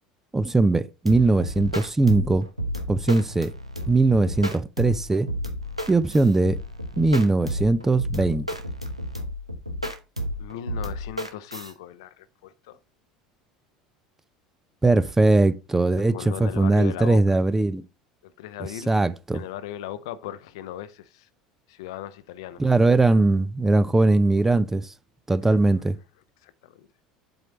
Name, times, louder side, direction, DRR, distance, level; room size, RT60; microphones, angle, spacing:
voice 1, 0.3-2.4 2.9-3.5 3.9-5.3 5.9-6.6 7.0-8.5 14.8-17.8 18.9-19.4 22.6-24.9 25.3-26.0, right 2 dB, 10° right, 0.6 m, -20 dB
sound 1, 1.1-11.7, equal, 90° right, 0.9 m, -32 dB
voice 2, 10.4-12.8 16.1-17.4 18.2-18.9 19.3-21.3 21.7-22.6 25.5-25.8 26.4-26.9, left 12 dB, 60° left, 0.7 m, -38 dB
7.9 x 4.4 x 5.2 m
figure-of-eight pair, 70°, 3 cm